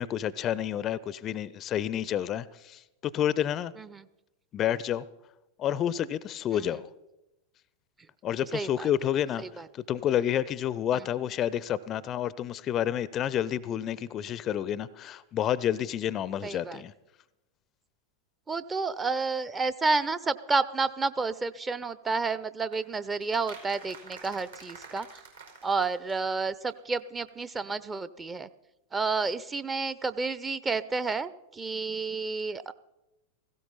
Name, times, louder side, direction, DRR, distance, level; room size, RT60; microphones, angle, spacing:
voice 1, 0.0-3.7 4.5-5.0 5.6-6.9 8.2-9.4 9.9-16.9, left 10 dB, 30° left, 0.5 m, -29 dB
voice 2, 3.8-4.1 6.5-6.8 8.0-8.1 8.5-8.9 9.4-9.7 10.9-11.1 16.4-16.8 18.5-25.2 25.6-28.5 28.9-32.7, right 4 dB, 15° right, 0.6 m, -30 dB
sound 1, 22.7-26.7 27.0-27.1 27.3-27.4, right 5 dB, 75° right, 4.7 m, -48 dB
17.5 x 16.0 x 4.0 m
figure-of-eight pair, 90°, 0 cm